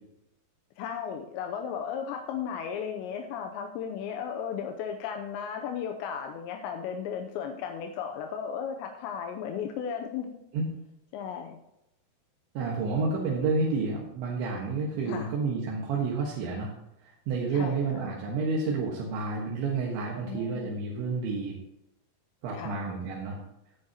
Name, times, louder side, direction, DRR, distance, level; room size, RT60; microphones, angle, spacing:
voice 1, 0.8-10.3 11.1-11.6 15.0-15.3 17.5-17.8 20.3-20.8 22.5-22.8, left 7 dB, 85° left, 4 dB, 3.0 m, -35 dB
voice 2, 12.6-16.7 17.0-21.6 22.4-23.4, right 4 dB, 80° right, -2 dB, 3.8 m, -30 dB
17.0 x 9.6 x 2.9 m, 0.85 s
omnidirectional pair, 5.1 m